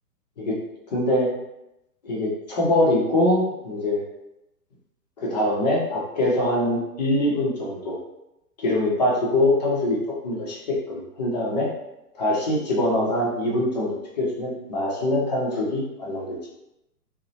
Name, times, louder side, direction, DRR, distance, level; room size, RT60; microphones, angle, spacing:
voice 1, 0.9-1.3 2.0-4.0 5.2-8.0 8.6-10.0 10.2-11.7 12.1-16.3, left 1 dB, 30° left, -4 dB, 0.5 m, -23 dB
2.7 x 2.1 x 2.7 m, 0.87 s
figure-of-eight pair, 120°, 48 cm